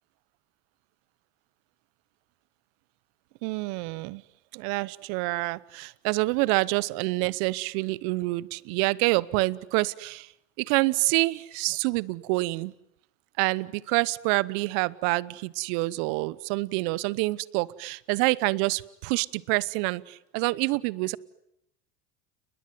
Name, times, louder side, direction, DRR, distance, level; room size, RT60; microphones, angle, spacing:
voice 1, 3.4-4.2 4.5-10.3 10.6-12.7 13.4-21.2, right 23 dB, 70° right, 21 dB, 1.1 m, -27 dB
30.0 x 21.0 x 9.5 m, 0.82 s
hypercardioid pair, 85°, 47 cm